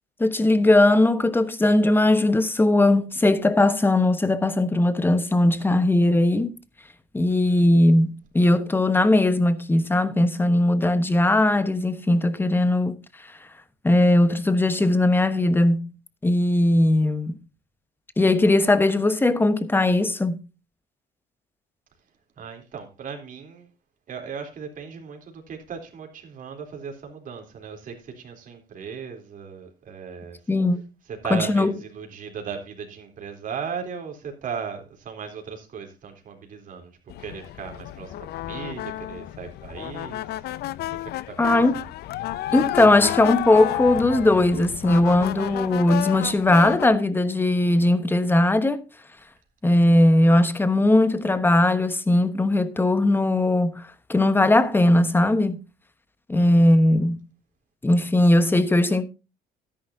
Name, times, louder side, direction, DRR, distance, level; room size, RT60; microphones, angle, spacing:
voice 1, 0.2-6.5 7.1-13.0 13.8-15.9 16.2-17.4 18.2-20.4 30.5-30.8 31.3-31.7 41.4-41.8 42.5-48.8 49.6-53.8 54.1-55.6 56.3-57.2 57.8-59.0, left 1 dB, 10° left, 1.2 m, -19 dB
voice 2, 7.3-7.6 22.4-23.7 24.1-30.4 31.1-36.9 37.2-40.2 40.9-41.8 56.4-56.6, right 6 dB, 55° right, 3.6 m, -37 dB
sound 1, 37.1-46.9, left 15 dB, 70° left, 0.5 m, -31 dB
13.0 x 10.5 x 2.7 m
cardioid pair, 110°, 17 cm